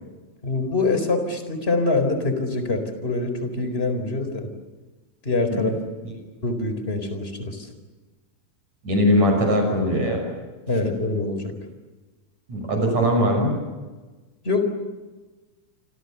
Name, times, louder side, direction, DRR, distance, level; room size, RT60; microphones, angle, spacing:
voice 1, 0.4-4.5 5.2-5.7 6.4-7.7 10.7-11.5 14.4-14.6, left 3 dB, 15° left, 7 dB, 4.2 m, -24 dB
voice 2, 8.8-10.2 12.5-13.5, equal, 50° right, 3 dB, 7.7 m, -20 dB
29.0 x 26.5 x 7.0 m, 1.3 s
omnidirectional pair, 4.2 m